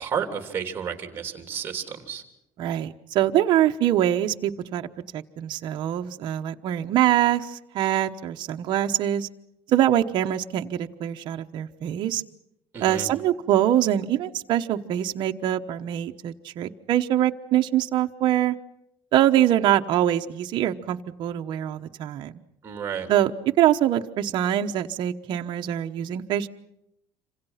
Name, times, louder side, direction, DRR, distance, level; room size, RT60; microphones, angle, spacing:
voice 1, 0.0-2.2 12.7-13.1 22.6-23.1, right 7 dB, 20° right, 6 dB, 3.2 m, -31 dB
voice 2, 2.6-4.9 5.1-9.3 9.7-12.2 12.8-18.5 19.1-22.3 23.1-23.3 23.6-26.5, right 12 dB, 50° right, 4 dB, 1.1 m, -24 dB
27.0 x 26.0 x 5.8 m, 0.79 s
cardioid pair, 160°, 10 cm